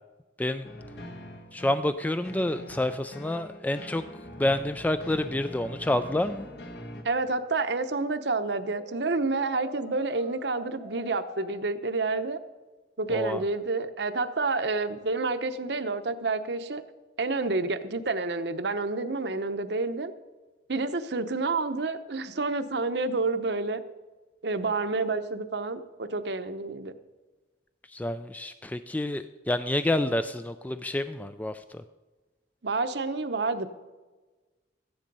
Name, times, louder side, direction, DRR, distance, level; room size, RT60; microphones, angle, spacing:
sound 1, 0.6-7.0, left 1 dB, 65° left, 1.5 m, -43 dB
voice 1, 1.5-4.0 4.4-6.5 13.1-13.4 27.9-31.8, left 1 dB, 10° left, 10 dB, 0.3 m, -28 dB
voice 2, 7.0-12.4 13.0-16.8 17.2-20.1 20.7-23.8 24.4-26.9 32.6-33.7, right 3 dB, 70° right, 10 dB, 0.9 m, -29 dB
Brass instrument, 8.8-11.5 13.1-13.6, left 1 dB, 85° left, 2.6 m, -46 dB
14.0 x 10.5 x 5.4 m, 1.3 s
head